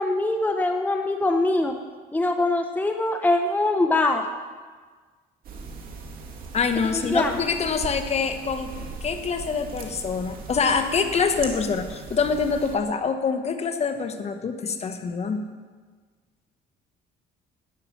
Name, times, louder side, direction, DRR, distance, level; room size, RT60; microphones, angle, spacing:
voice 1, 0.0-1.7 2.1-4.2 6.9-7.4, left 2 dB, 10° left, 5 dB, 0.8 m, -23 dB
sound 1, 5.4-12.8, right 4 dB, 60° right, 2.2 m, -39 dB
voice 2, 6.5-8.7 9.0-15.5, left 5 dB, 40° left, 7 dB, 1.2 m, -25 dB
11.5 x 9.5 x 6.4 m, 1.5 s
cardioid pair, 110°, 17 cm